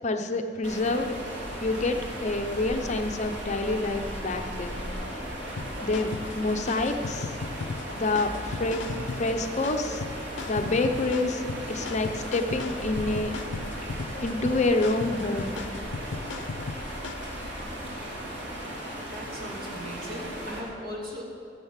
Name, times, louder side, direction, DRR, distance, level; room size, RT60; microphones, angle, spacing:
voice 1, 0.0-1.2 1.6-4.8 5.8-7.3 8.0-8.8 9.2-10.0 10.5-11.4 11.7-13.3 14.2-15.6, left 2 dB, 40° left, 6 dB, 0.7 m, -27 dB
sound 1, 0.6-20.6, equal, 90° right, 3.4 m, -36 dB
sound 2, 5.6-17.4, left 4 dB, 85° left, 0.5 m, -37 dB
voice 2, 19.1-21.2, equal, 55° right, -2 dB, 2.8 m, -38 dB
16.0 x 7.3 x 7.3 m, 2.5 s
head